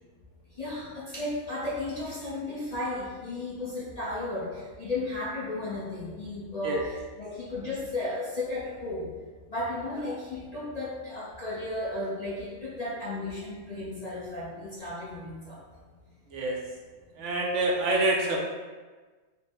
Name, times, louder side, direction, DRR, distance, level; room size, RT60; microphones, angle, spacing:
voice 1, 0.6-9.1 9.5-15.6 17.1-17.2, left 2 dB, 40° left, -8 dB, 0.6 m, -34 dB
voice 2, 17.2-18.4, right 2 dB, 70° right, -1 dB, 0.8 m, -26 dB
4.2 x 2.0 x 3.6 m, 1.3 s
omnidirectional pair, 1.4 m